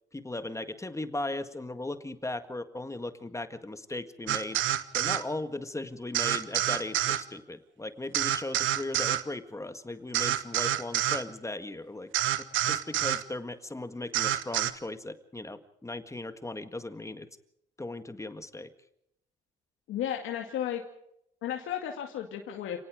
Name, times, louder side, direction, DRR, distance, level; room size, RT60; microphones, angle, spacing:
voice 1, 0.1-4.6 4.9-12.1 12.4-17.3 17.8-18.7, left 2 dB, 15° left, 9 dB, 1.8 m, -37 dB
sound 1, 4.3-5.2 6.1-7.2 8.1-9.2 10.1-11.2 12.1-13.2 14.1-14.7, right 12 dB, 85° right, 1.3 m, -27 dB
voice 2, 19.9-20.8 21.4-22.8, left 10 dB, 85° left, 3 dB, 2.3 m, -33 dB
30.0 x 18.5 x 5.1 m, 0.78 s
cardioid pair, 90°, 20 cm